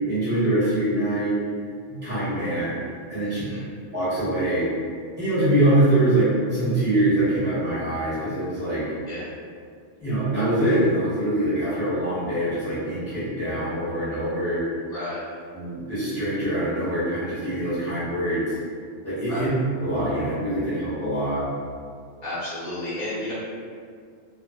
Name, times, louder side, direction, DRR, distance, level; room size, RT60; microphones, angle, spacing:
voice 1, 0.1-1.3 1.9-2.8 3.1-3.4 3.9-4.7 5.2-8.8 10.0-14.6 15.5-18.6 19.0-19.5 19.8-21.4, right 1 dB, 10° right, -14 dB, 1.1 m, -24 dB
voice 2, 3.2-3.6 9.0-9.3 14.9-15.2 19.3-19.5 22.2-23.3, left 1 dB, 35° left, -10 dB, 0.9 m, -32 dB
2.5 x 2.3 x 2.2 m, 2.2 s
omnidirectional pair, 1.2 m